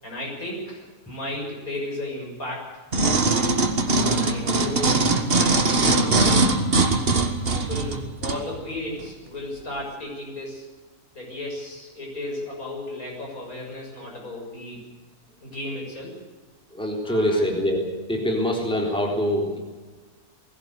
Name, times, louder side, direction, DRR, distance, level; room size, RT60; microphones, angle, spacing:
voice 1, 0.0-2.7 3.9-5.0 5.2-5.6 5.9-6.5 7.5-10.7 11.2-14.8 15.4-16.2 17.0-17.6, left 1 dB, 70° left, -2 dB, 7.2 m, -34 dB
sound 1, 2.9-8.4 9.0-9.1, right 3 dB, 40° right, 1.7 m, -21 dB
voice 2, 16.7-17.8 18.1-19.6, equal, 5° left, 0 dB, 3.8 m, -24 dB
20.0 x 16.5 x 8.2 m, 1.3 s
omnidirectional pair, 1.6 m